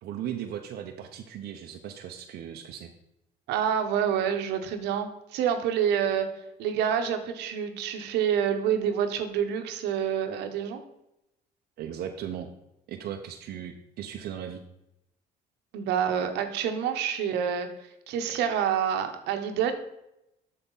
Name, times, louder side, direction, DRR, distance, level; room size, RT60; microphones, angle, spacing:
voice 1, 0.0-2.9 11.8-12.5 12.9-14.6, right 9 dB, 70° right, 3 dB, 0.7 m, -37 dB
voice 2, 3.5-6.3 6.6-10.8 15.7-17.7 18.1-19.7, right 8 dB, 90° right, 6 dB, 1.0 m, -27 dB
8.1 x 6.6 x 4.0 m, 0.85 s
cardioid pair, 110°, 17 cm